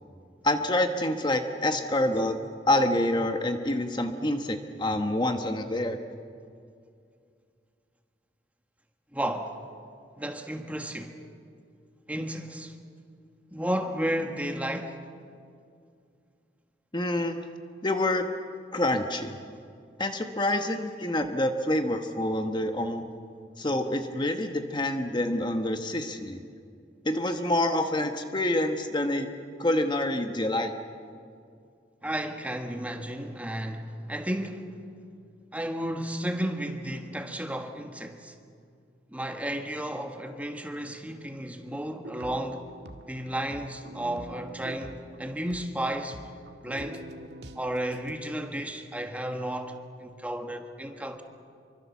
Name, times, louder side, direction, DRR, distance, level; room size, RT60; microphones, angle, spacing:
voice 1, 0.4-2.4 2.6-6.0 16.9-17.4 17.8-18.2 18.7-19.4 20.0-23.1 23.6-26.4 27.0-29.3 29.6-30.7, left 1 dB, 25° left, 1.2 m, -27 dB
voice 2, 9.1-9.6 10.2-11.2 12.1-12.8 13.5-15.0 32.0-34.8 35.5-38.4 39.1-42.7 43.1-46.3 46.6-47.0 47.5-51.2, right 1 dB, 10° right, 1.5 m, -33 dB
sound 1, 42.0-48.1, right 1 dB, 70° right, 1.7 m, -45 dB
26.5 x 24.5 x 7.2 m
head